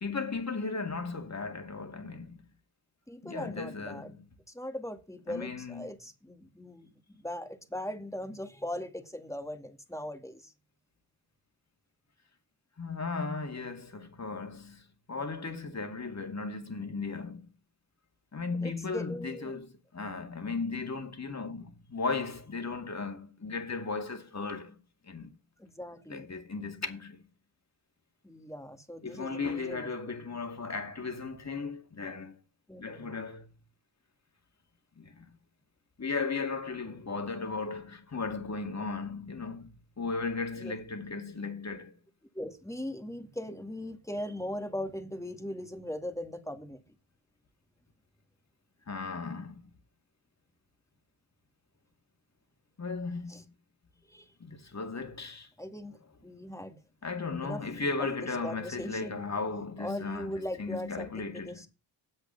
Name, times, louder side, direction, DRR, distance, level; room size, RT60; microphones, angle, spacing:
voice 1, 0.0-2.4 3.2-4.3 5.3-5.9 12.8-17.5 18.3-24.8 25.1-25.3 26.1-27.2 29.0-32.3 32.8-33.6 35.0-35.4 36.0-41.9 48.9-49.6 52.8-53.3 54.4-55.5 57.0-61.7, left 4 dB, 30° left, 2.4 m, -36 dB
voice 2, 3.1-4.1 4.5-10.5 18.6-19.6 25.6-26.3 28.2-29.9 32.7-33.2 40.6-40.8 42.3-46.8 53.3-53.4 54.0-54.3 55.6-56.0 56.2-56.8 57.4-57.6 58.0-59.2 59.8-61.7, left 1 dB, 5° left, 2.1 m, -39 dB
8.0 x 6.6 x 7.1 m
cardioid pair, 55°, 50 cm